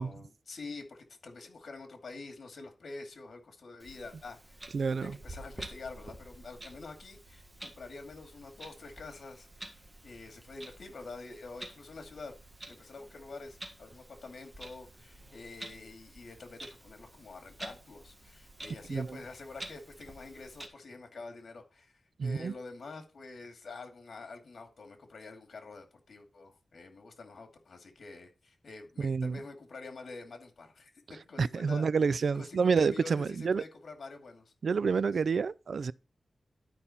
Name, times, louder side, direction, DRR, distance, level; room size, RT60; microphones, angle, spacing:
voice 1, 0.0-12.3 12.7-30.9 31.2-31.9 32.3-34.5, left 3 dB, 75° left, 2.4 m, -47 dB
Clock, 3.8-20.7, right 1 dB, 20° right, 1.7 m, -49 dB
voice 2, 4.7-5.2 18.9-19.1 22.2-22.5 29.0-29.4 31.4-33.6 34.6-35.9, right 5 dB, 70° right, 0.4 m, -28 dB
12.0 x 5.5 x 4.2 m
wide cardioid pair, 135°, 0 cm